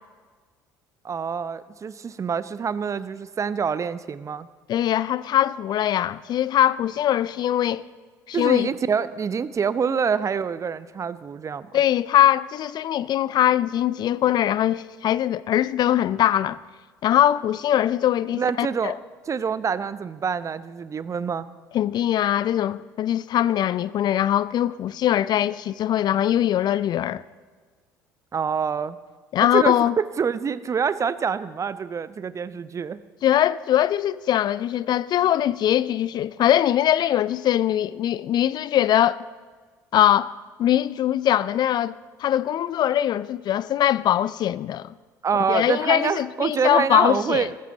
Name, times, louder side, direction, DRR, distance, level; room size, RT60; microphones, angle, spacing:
voice 1, 1.0-4.5 8.3-11.7 18.3-19.0 19.3-21.5 28.3-29.0 29.5-33.0 45.2-47.6, right 6 dB, 30° right, 0.7 m, -26 dB
voice 2, 4.7-7.8 8.3-8.7 11.7-16.6 17.0-19.0 21.7-27.2 29.3-30.0 33.2-39.2 39.9-44.9 45.3-47.5, left 11 dB, 45° left, 0.4 m, -22 dB
20.5 x 14.5 x 3.9 m
figure-of-eight pair, 60°, 10 cm